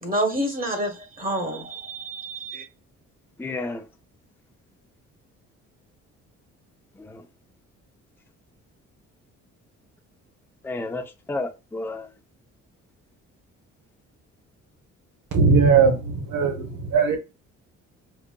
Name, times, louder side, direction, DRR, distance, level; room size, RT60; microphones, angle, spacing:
voice 1, 0.0-2.6, right 1 dB, 30° right, 1.2 m, -28 dB
voice 2, 3.4-3.8 7.0-7.2 10.6-12.1, left 2 dB, 5° left, 0.6 m, -31 dB
voice 3, 15.3-17.2, right 5 dB, 85° right, 1.0 m, -19 dB
5.2 x 2.4 x 2.2 m
cardioid pair, 90°, 30 cm